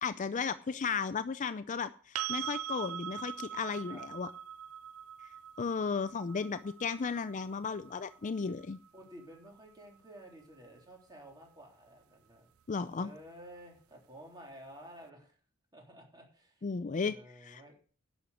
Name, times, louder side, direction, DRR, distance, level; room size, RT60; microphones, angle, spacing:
voice 1, 0.0-4.3 5.6-8.8 12.7-13.1 16.6-17.1 17.4-17.7, left 5 dB, 35° left, 13 dB, 0.4 m, -35 dB
sound 1, 2.1-10.0 12.8-12.9, right 11 dB, 90° right, 0.4 m, -43 dB
voice 2, 8.9-12.5 12.8-15.4 15.7-16.6 17.0-17.7, equal, 20° right, -1 dB, 3.5 m, -52 dB
11.0 x 6.4 x 6.9 m, 0.42 s
head